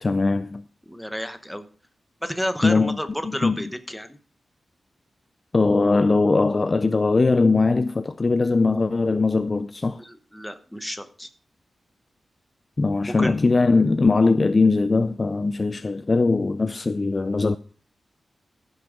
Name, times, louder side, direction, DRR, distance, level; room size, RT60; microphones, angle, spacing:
voice 1, 0.0-0.6 2.6-3.0 3.2-3.6 5.5-10.0 12.8-17.6, left 3 dB, 30° left, 0.4 m, -20 dB
voice 2, 0.9-1.6 2.2-4.1 10.0-11.3 13.1-13.4, equal, ahead, 1.0 m, -31 dB
15.0 x 6.3 x 5.1 m
wide cardioid pair, 150°, 0 cm